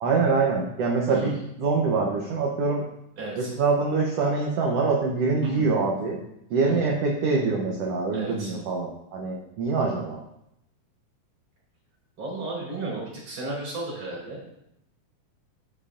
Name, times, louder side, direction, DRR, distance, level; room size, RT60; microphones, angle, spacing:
voice 1, 0.0-2.8 3.4-6.2 6.5-10.2, right 4 dB, 70° right, -1 dB, 1.5 m, -24 dB
voice 2, 3.2-3.5 5.4-5.7 6.7-6.8 8.1-8.5 12.2-14.4, right 2 dB, 50° right, -4 dB, 4.7 m, -34 dB
11.0 x 7.2 x 2.5 m, 0.80 s
omnidirectional pair, 3.9 m